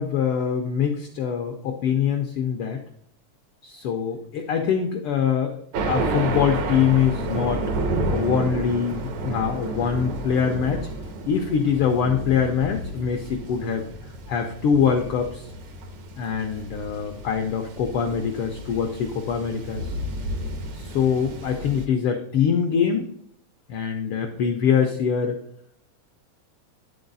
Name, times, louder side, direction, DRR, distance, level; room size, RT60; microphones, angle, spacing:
voice 1, 0.0-2.8 3.6-10.9 11.3-13.9 14.3-15.5 16.2-19.9 20.7-23.1 23.7-25.4, left 7 dB, 80° left, 4 dB, 1.2 m, -24 dB
Thunder, 5.7-21.9, right 2 dB, 80° right, 2.4 m, -31 dB
11.0 x 3.9 x 3.9 m, 0.68 s
omnidirectional pair, 3.3 m